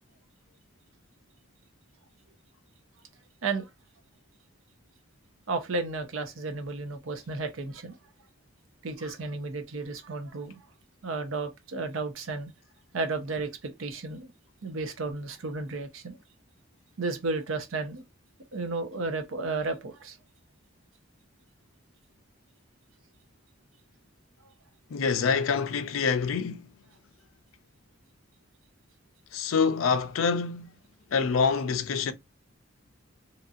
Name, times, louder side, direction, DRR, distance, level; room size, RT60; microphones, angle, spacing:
voice 1, 5.5-8.0 8.8-10.6 11.0-12.5 12.9-14.3 14.6-16.2 17.0-18.0 18.5-20.2, right 3 dB, 80° right, 0.6 m, -33 dB
voice 2, 24.9-26.7 29.3-30.7 31.1-32.1, left 5 dB, 80° left, 0.4 m, -26 dB
2.9 x 2.6 x 2.4 m
head